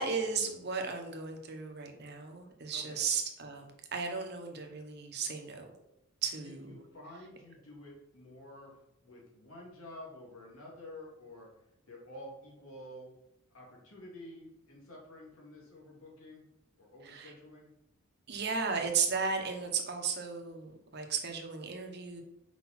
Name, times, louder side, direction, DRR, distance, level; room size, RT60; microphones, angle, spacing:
voice 1, 0.0-5.7 6.2-6.8 17.0-17.3 18.3-22.2, right 5 dB, 50° right, 4 dB, 1.1 m, -35 dB
voice 2, 2.7-3.0 6.4-8.7 9.0-11.5 11.9-13.1 13.5-16.4 16.8-17.7, left 1 dB, 85° left, -3 dB, 2.5 m, -50 dB
5.9 x 5.2 x 4.3 m, 0.86 s
head